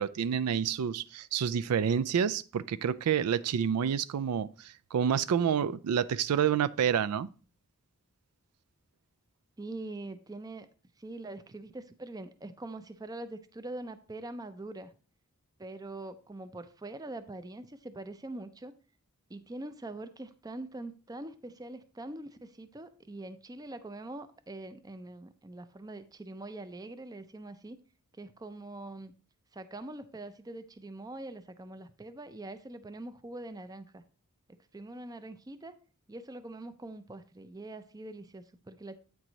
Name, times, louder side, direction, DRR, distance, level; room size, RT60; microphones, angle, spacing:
voice 1, 0.0-7.3, right 8 dB, 85° right, 0.4 m, -28 dB
voice 2, 9.6-10.7 11.0-14.9 15.6-18.7 19.3-27.8 28.1-29.1 29.5-34.0 34.5-35.8 36.1-39.0, right 2 dB, 15° right, 0.4 m, -43 dB
8.7 x 4.7 x 3.9 m
head